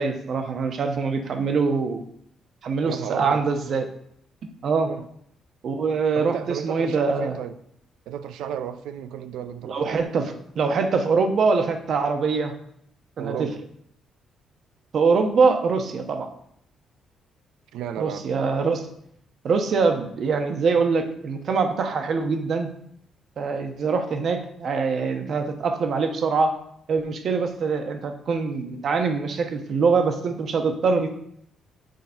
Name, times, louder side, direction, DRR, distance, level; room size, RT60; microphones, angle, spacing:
voice 1, 0.0-2.0 2.6-3.9 4.6-4.9 5.6-7.4 9.6-12.5 13.2-13.5 14.9-16.3 18.0-18.9 19.4-22.7 23.4-26.5 26.9-31.1, right 4 dB, 60° right, 1.0 m, -23 dB
voice 2, 2.9-3.4 4.8-5.1 6.1-7.6 8.1-10.1 13.2-13.6 17.7-18.3, right 9 dB, 90° right, 0.5 m, -33 dB
6.6 x 4.1 x 5.3 m
cardioid pair, 90°, 0 cm